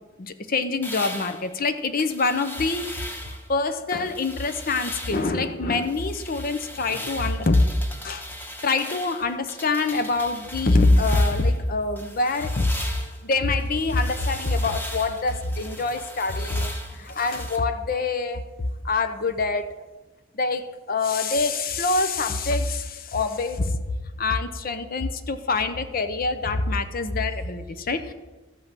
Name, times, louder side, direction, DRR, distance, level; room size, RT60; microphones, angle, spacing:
voice 1, 0.2-3.2 3.5-7.6 8.0-8.3 8.6-12.7 13.2-16.7 17.0-18.4 18.8-19.8 20.3-23.7 24.2-28.1, left 3 dB, 45° left, 10 dB, 0.7 m, -25 dB
sound 1, 0.8-3.5 3.9-5.3 5.7-11.6 12.0-17.6, equal, 10° left, 1.3 m, -39 dB
13.5 x 5.6 x 7.3 m, 1.1 s
head